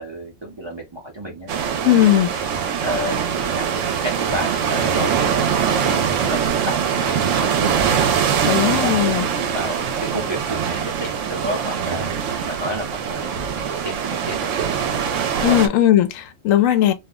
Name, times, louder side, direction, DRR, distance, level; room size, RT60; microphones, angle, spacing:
voice 1, 0.0-1.8 2.8-5.5 5.8-7.9 8.4-9.0 9.3-12.1 12.4-13.4 13.6-14.5 15.4-15.6, equal, 35° right, 0.5 m, -31 dB
sound 1, 1.5-15.7, right 7 dB, 75° right, 0.9 m, -22 dB
voice 2, 1.8-2.3 8.4-9.3 15.4-16.9, left 12 dB, 90° left, 1.0 m, -17 dB
2.5 x 2.0 x 3.4 m
omnidirectional pair, 1.3 m